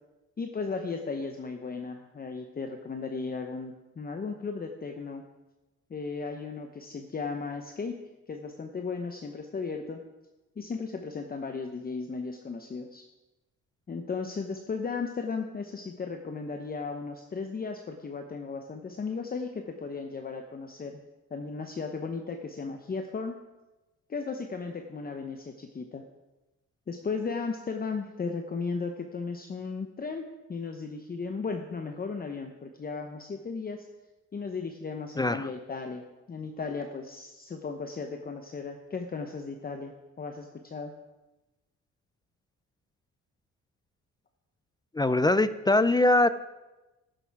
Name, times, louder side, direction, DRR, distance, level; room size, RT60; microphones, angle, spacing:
voice 1, 0.4-5.3 5.9-8.0 8.3-10.0 10.6-13.1 13.9-21.0 21.3-23.4 24.1-26.0 26.9-33.9 34.3-40.9, left 4 dB, 30° left, 5 dB, 0.9 m, -35 dB
voice 2, 35.2-35.5 44.9-46.3, left 2 dB, 15° left, 14 dB, 0.4 m, -22 dB
15.0 x 6.8 x 4.7 m, 1.1 s
cardioid pair, 90°, 30 cm